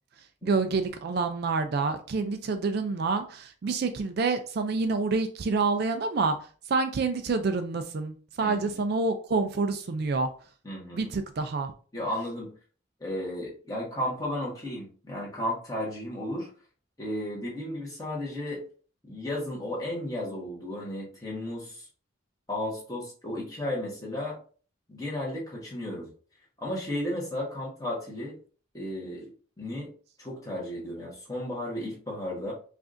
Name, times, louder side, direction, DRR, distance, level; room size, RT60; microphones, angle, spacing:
voice 1, 0.4-6.4 6.7-10.3 10.9-11.7, right 4 dB, 50° right, 8 dB, 0.3 m, -27 dB
voice 2, 8.4-8.8 10.6-11.1 11.9-12.5 13.0-16.5 17.0-18.6 19.0-21.8 22.5-24.4 24.9-26.1 26.6-28.4 28.7-29.3 29.6-29.9 30.2-32.5, left 1 dB, 15° left, -4 dB, 1.2 m, -34 dB
4.8 x 2.5 x 2.5 m, 0.40 s
head